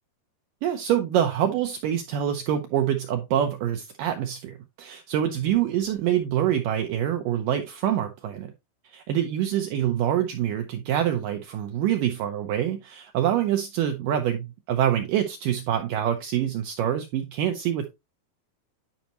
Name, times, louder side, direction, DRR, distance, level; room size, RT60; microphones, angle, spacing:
voice 1, 0.6-8.5 8.8-17.9, right 10 dB, 80° right, 2.0 m, -25 dB
10.5 x 5.2 x 2.9 m
omnidirectional pair, 4.6 m